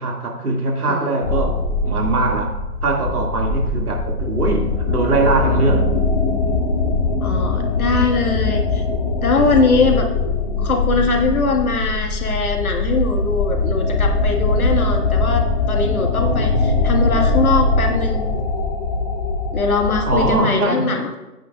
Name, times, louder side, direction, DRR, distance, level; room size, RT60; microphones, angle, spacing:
voice 1, 0.0-5.9 20.1-21.0, right 2 dB, 70° right, 1 dB, 2.3 m, -21 dB
sound 1, 1.2-20.4, left 3 dB, 30° left, 0.9 m, -21 dB
voice 2, 7.2-8.8 9.2-10.1 10.6-18.4 19.5-21.2, left 3 dB, 60° left, 3 dB, 1.8 m, -21 dB
15.0 x 9.2 x 2.4 m, 1.0 s
figure-of-eight pair, 135°, 47 cm